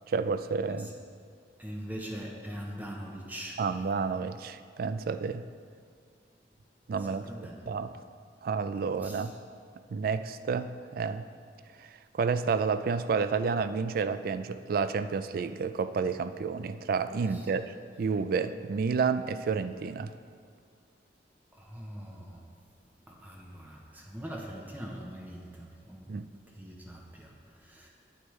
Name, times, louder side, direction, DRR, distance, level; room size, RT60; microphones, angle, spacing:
voice 1, 0.1-0.9 3.6-5.5 6.9-7.9 8.4-9.3 9.9-11.3 11.8-20.1 26.1-26.3, right 5 dB, 55° right, 12 dB, 0.3 m, -30 dB
voice 2, 1.6-3.6 7.0-7.6 9.0-9.3 17.3-17.4 21.5-22.5 23.1-26.2 26.6-27.3 27.6-27.9, equal, 10° right, -1 dB, 0.7 m, -42 dB
9.3 x 8.0 x 3.2 m, 2.1 s
head